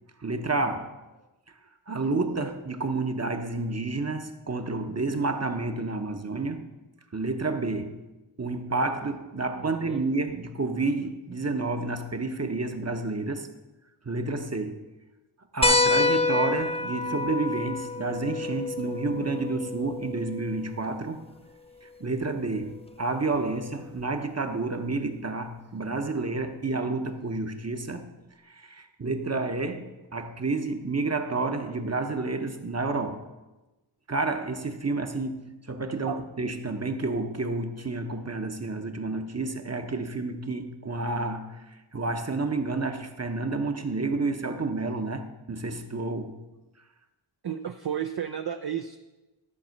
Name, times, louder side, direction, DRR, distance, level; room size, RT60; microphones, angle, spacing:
voice 1, 0.2-0.9 1.9-6.7 7.1-8.0 8.4-13.5 14.0-14.9 15.5-21.2 21.8-28.1 28.5-33.2 34.1-46.4, right 3 dB, 30° right, 7 dB, 0.9 m, -30 dB
voice 2, 9.6-10.0 36.1-36.2 47.4-49.0, right 9 dB, 55° right, 7 dB, 0.5 m, -32 dB
sound 1, 15.6-20.7 22.2-22.3 24.0-24.1, left 3 dB, 15° left, 0.5 m, -27 dB
12.5 x 4.2 x 6.4 m, 1.1 s
wide cardioid pair, 40°, 48 cm